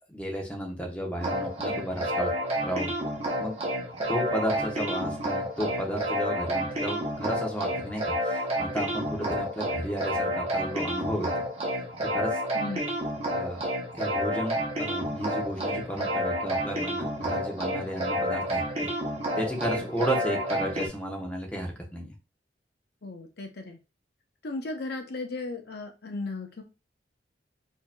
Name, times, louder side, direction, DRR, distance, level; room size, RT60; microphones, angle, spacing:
voice 1, 0.1-2.3 2.6-2.9 3.4-3.6 4.1-11.3 12.1-12.4 13.3-13.6 13.9-18.6 19.4-22.1, equal, 10° left, 0 dB, 0.9 m, -33 dB
sound 1, 1.2-20.9, equal, 35° right, 1.0 m, -30 dB
voice 2, 12.5-12.9 23.0-23.8 24.4-26.6, left 2 dB, 60° left, 3 dB, 0.7 m, -36 dB
4.6 x 2.8 x 2.2 m, 0.30 s
head